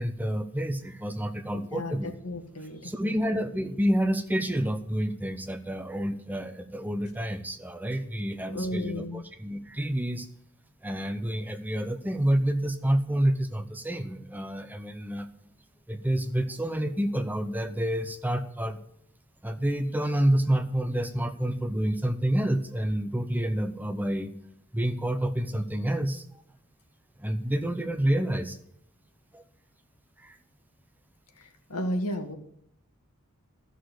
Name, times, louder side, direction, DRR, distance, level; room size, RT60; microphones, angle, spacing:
voice 1, 0.0-2.1 2.8-10.3 10.8-15.3 15.9-18.8 19.4-24.3 24.7-26.2 27.2-28.6 29.3-29.4 30.2-30.4, right 1 dB, 10° right, 8 dB, 0.8 m, -28 dB
voice 2, 1.7-3.2 8.5-9.2 31.4-32.3, left 1 dB, 90° left, 5 dB, 2.0 m, -34 dB
13.5 x 6.6 x 7.9 m, 0.72 s
head